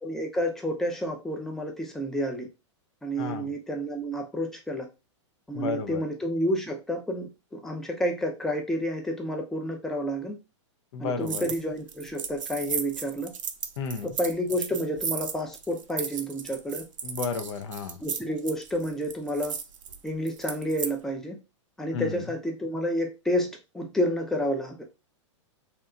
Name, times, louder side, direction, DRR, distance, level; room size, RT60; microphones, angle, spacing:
voice 1, 0.0-2.5 3.0-4.9 5.5-10.4 11.0-13.3 14.0-16.8 18.0-19.5 20.0-21.4 21.8-23.5 23.7-24.8, equal, 5° left, 0.5 m, -30 dB
voice 2, 3.2-3.5 5.5-6.0 10.9-11.5 13.8-14.2 17.0-18.0 21.9-22.3, left 5 dB, 65° left, 0.5 m, -32 dB
sound 1, 11.3-11.6 11.9-20.9, right 7 dB, 90° right, 0.4 m, -35 dB
2.8 x 2.2 x 2.4 m
hypercardioid pair, 120°, 16 cm